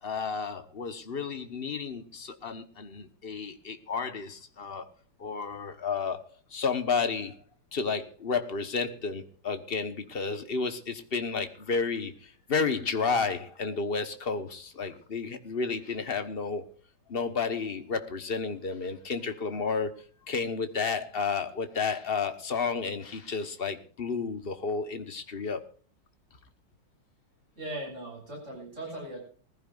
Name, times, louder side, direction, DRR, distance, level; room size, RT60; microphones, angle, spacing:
voice 1, 0.0-4.9 5.2-6.2 6.5-7.4 7.7-16.6 17.1-20.0 20.3-25.6, left 5 dB, 35° left, 1.2 m, -31 dB
voice 2, 27.6-29.2, right 1 dB, 35° right, 7.9 m, -39 dB
20.5 x 15.5 x 2.5 m
omnidirectional pair, 2.3 m